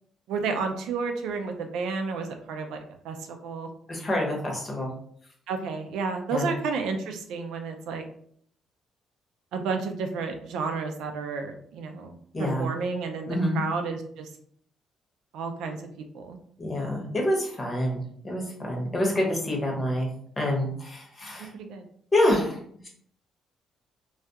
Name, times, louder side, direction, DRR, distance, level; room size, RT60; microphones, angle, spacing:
voice 1, 0.3-3.7 5.5-8.0 9.5-14.3 15.3-15.9 16.1-16.4 21.5-21.8, right 4 dB, 90° right, 5 dB, 0.4 m, -31 dB
voice 2, 3.9-4.9 6.3-6.5 12.3-12.7 13.3-13.6 16.6-20.1 20.4-21.5 22.1-22.6, left 1 dB, 30° left, 0 dB, 0.9 m, -27 dB
2.3 x 2.2 x 2.7 m, 0.63 s
cardioid pair, 90°, 0 cm